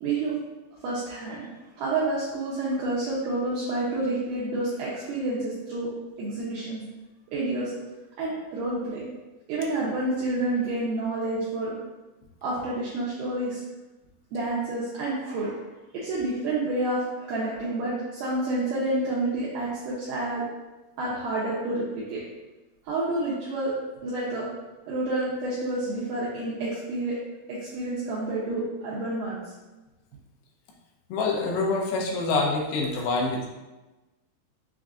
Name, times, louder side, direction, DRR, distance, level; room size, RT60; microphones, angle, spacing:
voice 1, 0.0-0.3 0.8-1.5 1.8-5.9 6.2-6.8 7.3-7.7 8.2-9.0 9.5-11.7 12.4-13.6 14.3-15.6 15.9-20.4 21.0-22.2 22.8-23.8 24.0-24.5 24.9-27.2 27.5-29.4, right 2 dB, 80° right, -8 dB, 2.0 m, -29 dB
voice 2, 31.1-33.5, left 3 dB, 80° left, 0 dB, 2.4 m, -26 dB
6.3 x 2.5 x 2.4 m, 1.1 s
omnidirectional pair, 4.4 m